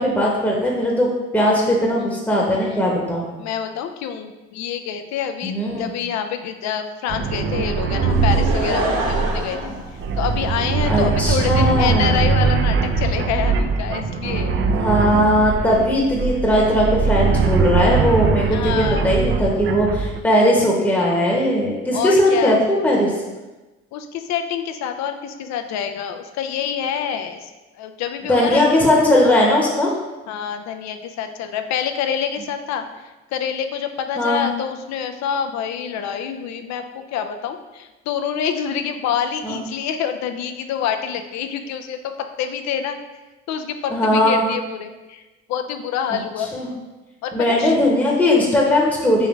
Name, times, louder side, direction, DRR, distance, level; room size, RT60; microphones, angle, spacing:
voice 1, 0.0-3.3 5.4-5.9 9.7-9.8 10.8-12.2 14.6-23.1 28.3-29.9 34.2-34.5 39.4-39.6 43.9-44.5 46.5-46.7 47.3-49.3, left 1 dB, 5° left, -3 dB, 0.9 m, -18 dB
voice 2, 2.0-2.3 3.4-9.6 10.2-14.5 18.5-19.1 21.9-22.6 23.9-27.5 27.8-28.7 30.3-32.9 33.3-42.0 42.4-43.0 43.5-45.2 45.5-46.5 47.2-47.7, left 8 dB, 65° left, 7 dB, 0.5 m, -26 dB
sound 1, 7.1-20.2, right 5 dB, 45° right, 0.4 m, -21 dB
Laughter / Crowd, 8.1-10.7 11.4-11.5, right 2 dB, 60° right, 0.9 m, -26 dB
3.5 x 3.3 x 3.1 m, 1.1 s
supercardioid pair, 60°, 29 cm